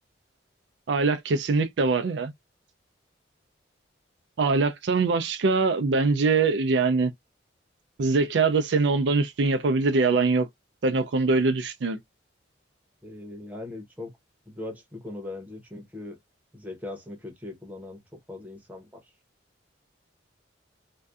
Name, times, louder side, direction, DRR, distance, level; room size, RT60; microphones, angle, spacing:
voice 1, 0.9-2.3 4.4-7.1 8.0-10.5 10.8-12.0, right 4 dB, 60° right, 0.4 m, -23 dB
voice 2, 13.0-14.1 14.5-16.2 16.5-18.0 18.3-19.0, left 2 dB, 10° right, 0.8 m, -39 dB
2.6 x 2.2 x 2.3 m
head